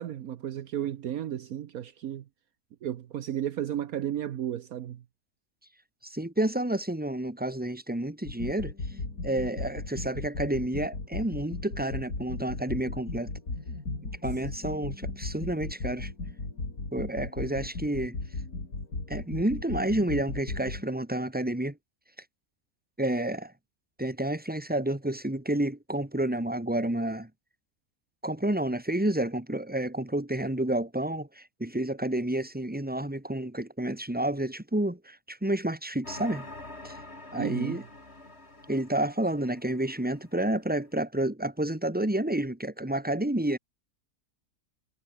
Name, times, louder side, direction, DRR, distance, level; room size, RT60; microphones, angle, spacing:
voice 1, 0.0-2.2 2.8-5.0 37.4-37.8, right 11 dB, 70° right, 1.3 m, -33 dB
voice 2, 6.0-8.7 9.2-13.3 14.2-16.1 16.9-18.2 19.1-21.8 23.0-23.5 24.0-27.3 28.2-36.5 36.8-37.0 37.3-37.8 38.7-43.6, right 1 dB, 5° right, 2.5 m, -30 dB
sound 1, 8.3-20.9, left 3 dB, 70° left, 4.9 m, -36 dB
sound 2, 36.0-40.5, left 2 dB, 40° left, 5.0 m, -46 dB
omnidirectional pair, 1.7 m